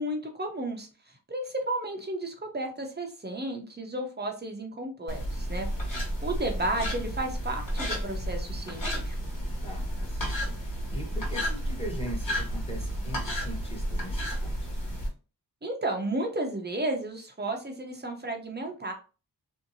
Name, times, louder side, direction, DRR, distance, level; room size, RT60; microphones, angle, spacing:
voice 1, 0.0-5.7 6.2-9.2 15.6-18.9, right 1 dB, 25° right, 3 dB, 0.7 m, -33 dB
sound 1, 5.1-15.1, equal, 50° left, 1.2 m, -32 dB
voice 2, 9.6-14.7, right 1 dB, 15° left, -2 dB, 1.1 m, -41 dB
2.7 x 2.1 x 2.6 m, 0.34 s
wide cardioid pair, 70°, 41 cm